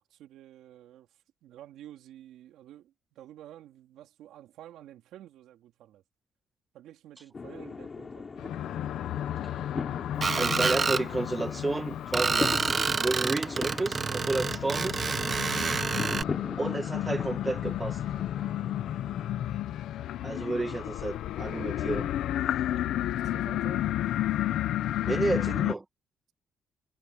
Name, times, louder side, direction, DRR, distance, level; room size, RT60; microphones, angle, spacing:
voice 1, 0.0-6.0 6.7-8.3 22.6-22.9 23.2-23.8, right 12 dB, 85° right, 3.4 m, -50 dB
sound 1, 7.3-19.3, left 4 dB, 35° left, 3.0 m, -40 dB
sound 2, 8.4-25.7, left 12 dB, 80° left, 0.9 m, -32 dB
Screech, 10.2-11.0 12.1-16.2, right 5 dB, 40° right, 1.2 m, -28 dB
voice 2, 10.4-15.0 16.6-18.0 20.2-22.1 25.1-25.8, right 2 dB, 20° right, 1.4 m, -31 dB
cardioid pair, 90°, 0 cm